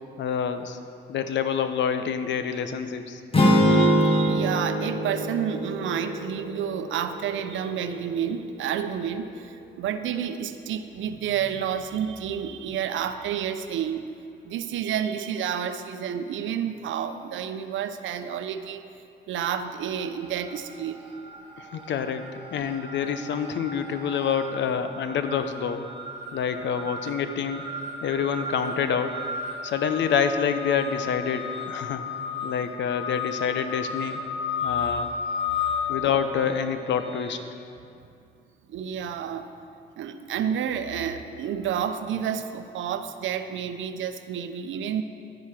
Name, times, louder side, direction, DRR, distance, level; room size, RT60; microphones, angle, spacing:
voice 1, 0.2-0.8 1.1-3.2 21.6-22.2 22.5-25.9 26.3-27.7 28.0-29.2 29.6-32.0 32.4-34.2 34.6-35.1 35.9-37.4, left 7 dB, 65° left, 9 dB, 0.8 m, -27 dB
sound 1, 3.3-7.5, equal, 30° left, 1.7 m, -23 dB
voice 2, 3.6-14.0 14.4-18.8 19.3-21.0 34.6-34.9 38.7-39.5 40.0-45.0, right 8 dB, 75° right, 9 dB, 0.7 m, -30 dB
sound 2, 19.9-20.5 20.8-37.4, left 4 dB, 30° right, 2.1 m, -34 dB
12.0 x 10.5 x 4.9 m, 2.5 s
cardioid pair, 90°, 20 cm